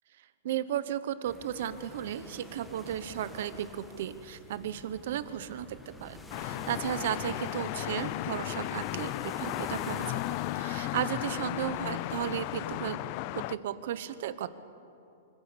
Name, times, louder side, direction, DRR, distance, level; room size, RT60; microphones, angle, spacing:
voice 1, 0.4-13.0 13.3-14.5, right 10 dB, 65° right, 14 dB, 1.0 m, -35 dB
sound 1, 1.2-12.9, left 1 dB, 5° left, 1.7 m, -48 dB
sound 2, 6.3-13.6, left 17 dB, 40° left, 0.4 m, -35 dB
25.0 x 15.5 x 7.0 m, 2.7 s
supercardioid pair, 155°, 0 cm